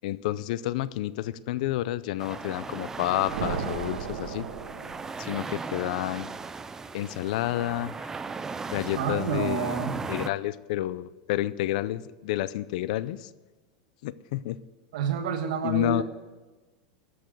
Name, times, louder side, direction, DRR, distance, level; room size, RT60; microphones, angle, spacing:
voice 1, 0.0-4.5 5.2-6.3 6.9-8.1 8.7-9.8 10.1-13.3 14.0-14.6 15.6-16.0, left 14 dB, 65° left, 18 dB, 0.5 m, -30 dB
sound 1, 2.2-10.3, right 4 dB, 10° right, 0.4 m, -37 dB
sound 2, 2.9-5.5, right 6 dB, 90° right, 1.3 m, -36 dB
voice 2, 9.0-10.0 14.9-16.0, right 7 dB, 75° right, 6 dB, 1.7 m, -29 dB
12.5 x 6.9 x 7.8 m, 1.2 s
supercardioid pair, 155°, 4 cm